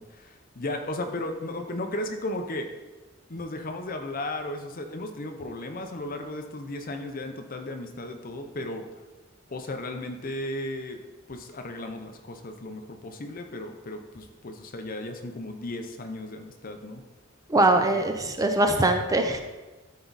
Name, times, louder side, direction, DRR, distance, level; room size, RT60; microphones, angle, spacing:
voice 1, 0.0-2.7 3.3-8.8 9.5-11.0 11.3-17.0 17.9-18.0, left 1 dB, 45° left, 5 dB, 0.7 m, -35 dB
voice 2, 17.5-19.4, right 2 dB, 20° right, 5 dB, 0.7 m, -22 dB
13.0 x 4.6 x 4.1 m, 1.2 s
head